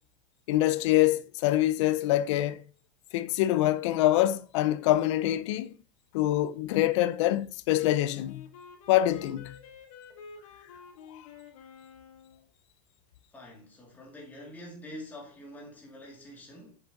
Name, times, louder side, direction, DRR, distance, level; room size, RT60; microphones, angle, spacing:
voice 1, 0.5-2.6 3.1-5.7 6.1-8.4 8.9-9.5, left 14 dB, 55° left, 0.7 m, -25 dB
Wind instrument woodwind instrument, 7.7-12.5, left 5 dB, 85° left, 2.1 m, -49 dB
voice 2, 13.3-16.8, left 1 dB, 10° left, 2.5 m, -46 dB
7.4 x 6.7 x 3.8 m
supercardioid pair, 180°, 18 cm